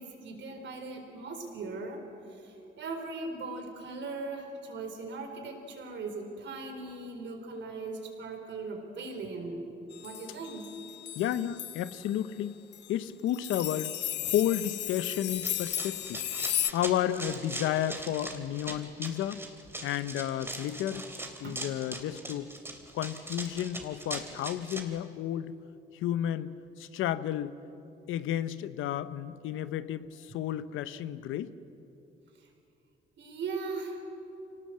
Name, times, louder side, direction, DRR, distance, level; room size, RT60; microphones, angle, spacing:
voice 1, 0.0-2.0 2.3-9.7 10.0-10.7 21.4-21.6 32.4-32.5 33.2-34.2, right 3 dB, 65° right, 4 dB, 4.2 m, -39 dB
sound 1, 9.9-12.1 12.7-12.9 13.3-16.7, left 12 dB, 60° left, 0.6 m, -35 dB
voice 2, 11.2-12.6 12.9-16.3 16.7-19.4 19.8-21.1 21.4-22.5 22.9-25.5 25.9-26.5 26.8-27.5 28.1-31.5, left 11 dB, 85° left, 14 dB, 0.8 m, -32 dB
Run, 15.3-24.8, right 1 dB, 10° right, 2.8 m, -40 dB
25.0 x 18.5 x 7.7 m, 2.9 s
cardioid pair, 90°, 20 cm